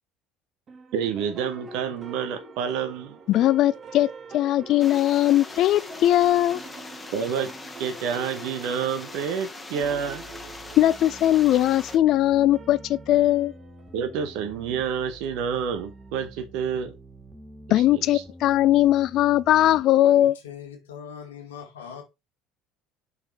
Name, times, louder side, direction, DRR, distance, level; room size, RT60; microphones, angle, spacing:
sound 1, 0.7-16.3, right 2 dB, 40° right, 1.5 m, -45 dB
voice 1, 0.9-3.2 7.1-7.5 7.8-10.2 13.9-17.0 17.7-18.2, right 7 dB, 65° right, 0.9 m, -29 dB
voice 2, 3.3-6.6 10.8-13.5 17.7-20.3, left 13 dB, 55° left, 0.5 m, -20 dB
sound 2, 4.8-12.0, left 3 dB, 20° left, 1.1 m, -41 dB
sound 3, 9.8-19.8, right 1 dB, ahead, 2.0 m, -47 dB
voice 3, 20.0-22.0, left 7 dB, 85° left, 2.0 m, -41 dB
5.9 x 4.1 x 4.3 m
hypercardioid pair, 65°, 0 cm